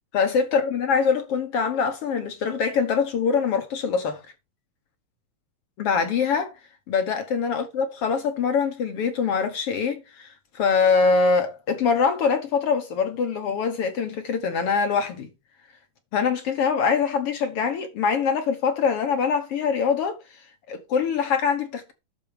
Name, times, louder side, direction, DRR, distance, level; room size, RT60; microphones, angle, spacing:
voice 1, 0.1-4.2 5.8-6.5 6.9-15.3 16.1-20.2 20.7-21.9, left 5 dB, 60° left, 1.7 m, -23 dB
10.5 x 6.5 x 4.9 m
omnidirectional pair, 3.8 m